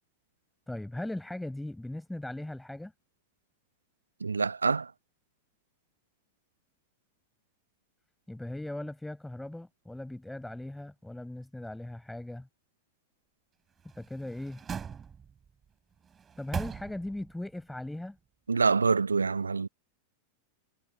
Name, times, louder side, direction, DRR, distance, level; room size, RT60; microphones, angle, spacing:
voice 1, 0.7-2.9 8.3-12.5 14.0-14.6 16.4-18.2, left 1 dB, 5° left, 5.5 m, -39 dB
voice 2, 4.2-4.9 18.5-19.7, right 4 dB, 75° right, 1.0 m, -26 dB
sound 1, 13.8-15.5 16.0-17.3 17.7-17.8, right 7 dB, 20° right, 4.9 m, -40 dB
figure-of-eight pair, 90°, 0 cm